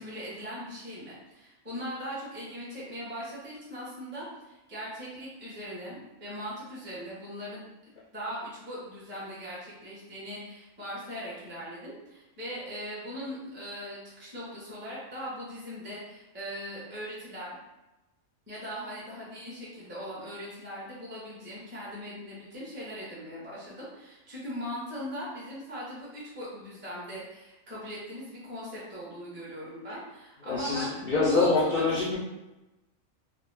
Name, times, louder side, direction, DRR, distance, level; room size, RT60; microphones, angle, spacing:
voice 1, 0.0-7.7 8.1-17.5 18.5-31.8, equal, 10° right, -7 dB, 0.5 m, -40 dB
voice 2, 30.4-32.2, left 3 dB, 60° left, -7 dB, 0.5 m, -25 dB
2.4 x 2.0 x 3.2 m, 1.0 s
omnidirectional pair, 1.4 m